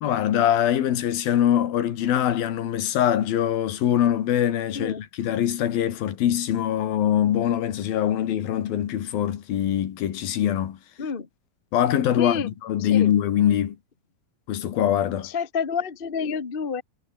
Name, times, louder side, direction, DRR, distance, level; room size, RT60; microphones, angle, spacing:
voice 1, 0.0-10.8 11.7-13.8 14.5-15.3, left 10 dB, 80° left, 3.7 m, -23 dB
voice 2, 12.2-12.5 12.8-13.1 15.2-16.8, left 6 dB, 60° left, 0.5 m, -29 dB
omnidirectional pair, 4.1 m